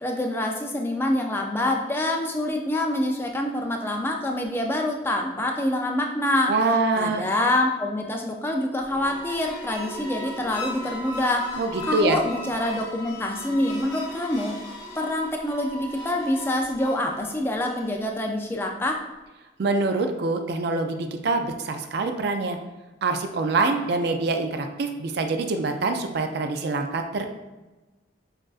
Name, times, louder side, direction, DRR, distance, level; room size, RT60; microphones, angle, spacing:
voice 1, 0.0-6.5 6.9-14.6 15.0-19.0, left 1 dB, 10° left, 2 dB, 0.4 m, -26 dB
voice 2, 6.5-7.3 11.6-12.2 19.6-22.6 23.0-27.3, right 3 dB, 55° right, 6 dB, 0.4 m, -25 dB
Metal Chaos Dry, 8.8-18.2, left 1 dB, 55° left, 0.9 m, -38 dB
6.2 x 2.4 x 2.4 m, 1.1 s
head